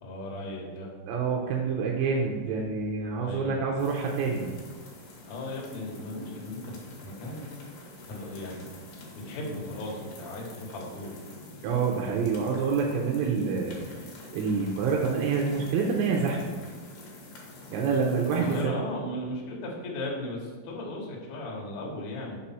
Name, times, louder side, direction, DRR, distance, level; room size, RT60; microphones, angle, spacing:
voice 1, 0.0-0.9 3.2-3.6 5.3-7.5 8.1-8.8 9.1-11.2 18.4-22.4, left 1 dB, 90° left, -2 dB, 1.5 m, -36 dB
voice 2, 1.1-4.6 11.6-14.1 14.3-16.5 17.7-18.8, right 5 dB, 85° right, -1 dB, 2.7 m, -27 dB
sound 1, 3.8-18.6, left 2 dB, 60° left, 2.5 m, -46 dB
6.8 x 4.2 x 5.8 m, 1.4 s
omnidirectional pair, 5.7 m